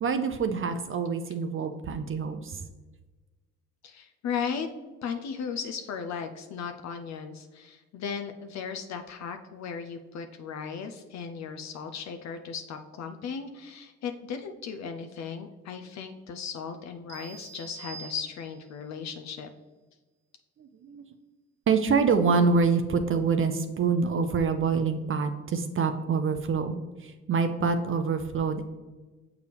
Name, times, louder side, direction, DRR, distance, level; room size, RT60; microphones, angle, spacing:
voice 1, 0.0-2.6 20.6-21.0 21.7-28.6, right 5 dB, 45° right, 7 dB, 0.5 m, -26 dB
voice 2, 3.8-4.7 5.0-19.5, left 6 dB, 65° left, 6 dB, 0.5 m, -36 dB
sound 1, 17.1-18.8, right 6 dB, 90° right, 1.1 m, -46 dB
6.8 x 4.7 x 3.3 m, 1.2 s
cardioid pair, 90°, 30 cm